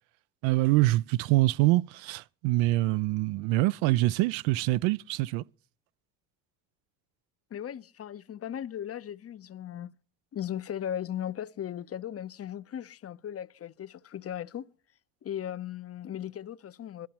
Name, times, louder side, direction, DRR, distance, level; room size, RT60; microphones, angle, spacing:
voice 1, 0.4-5.4, right 18 dB, 70° right, 0.6 m, -25 dB
voice 2, 7.5-9.9 10.3-14.7 15.2-17.1, left 10 dB, 30° left, 0.6 m, -37 dB
22.0 x 12.5 x 2.9 m
hypercardioid pair, 70°, 47 cm